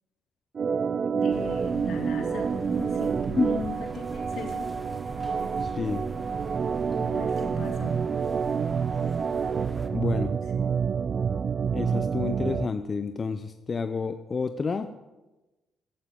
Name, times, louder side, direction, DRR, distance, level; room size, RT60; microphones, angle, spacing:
Organ, 0.5-12.7, right 6 dB, 45° right, 0.4 m, -28 dB
voice 1, 1.1-4.7 7.0-7.9, left 4 dB, 70° left, 2 dB, 2.8 m, -38 dB
sound 1, 1.3-9.9, right 1 dB, 15° right, 1.6 m, -42 dB
voice 2, 5.6-6.0 9.9-10.3 11.7-14.9, left 5 dB, 35° left, 9 dB, 0.6 m, -29 dB
12.0 x 8.3 x 7.8 m, 1.1 s
cardioid pair, 90°, 0 cm